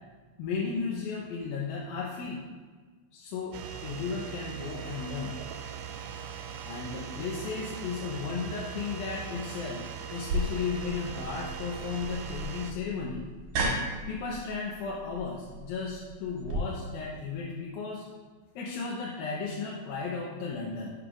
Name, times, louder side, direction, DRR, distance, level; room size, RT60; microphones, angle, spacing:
voice 1, 0.4-2.4 3.1-5.3 6.6-9.8 10.1-13.2 14.1-18.0 18.6-20.9, left 5 dB, 85° left, -4 dB, 2.6 m, -35 dB
sound 1, 3.5-12.7, right 8 dB, 85° right, 2.4 m, -40 dB
sound 2, 10.3-16.6, right 1 dB, 60° right, 2.6 m, -35 dB
11.0 x 6.7 x 2.5 m, 1.4 s
omnidirectional pair, 4.3 m